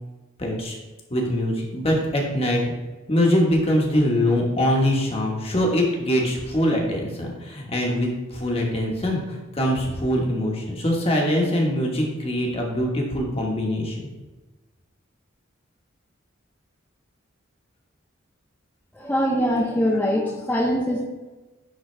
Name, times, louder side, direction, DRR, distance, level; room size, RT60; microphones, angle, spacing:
voice 1, 0.4-0.8 1.1-2.6 3.1-14.0, equal, 30° left, 0 dB, 1.3 m, -23 dB
voice 2, 18.9-21.0, equal, 10° left, -4 dB, 0.6 m, -22 dB
10.5 x 3.9 x 3.2 m, 1.2 s
head